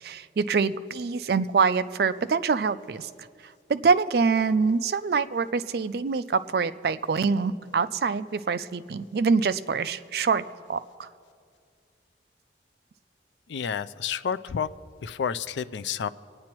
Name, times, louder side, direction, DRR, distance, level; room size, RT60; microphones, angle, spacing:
voice 1, 0.0-3.1 3.7-10.4 10.7-11.1, right 5 dB, 55° right, 13 dB, 0.4 m, -25 dB
voice 2, 13.5-14.7 15.0-16.1, left 7 dB, 75° left, 14 dB, 0.4 m, -30 dB
26.5 x 9.5 x 3.0 m, 2.2 s
head